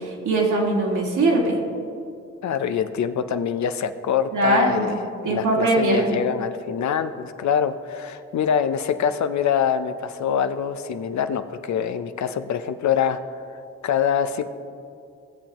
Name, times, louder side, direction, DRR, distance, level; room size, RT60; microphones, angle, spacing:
voice 1, 0.0-1.6 4.3-4.9 5.2-6.0, right 2 dB, 75° right, -2 dB, 2.0 m, -21 dB
voice 2, 2.4-13.2 13.8-14.4, left 8 dB, 65° left, 10 dB, 0.6 m, -24 dB
17.0 x 6.9 x 3.0 m, 2.4 s
supercardioid pair, 50°, 31 cm